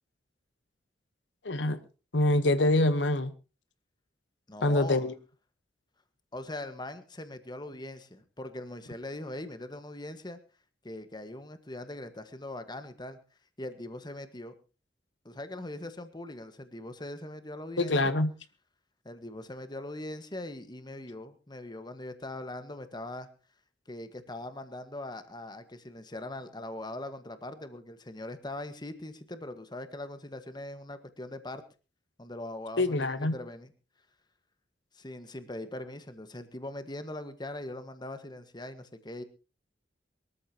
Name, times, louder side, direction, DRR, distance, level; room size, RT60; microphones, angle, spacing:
voice 1, 1.4-1.8 2.1-3.3 4.6-5.1 17.8-18.3 32.8-33.4, left 2 dB, 85° left, 1.1 m, -25 dB
voice 2, 4.5-5.1 6.3-10.4 10.8-13.2 13.6-14.5 15.2-18.0 19.0-23.3 23.9-31.6 32.2-33.7 34.9-39.2, left 1 dB, 25° left, 1.5 m, -41 dB
23.0 x 13.5 x 2.9 m
head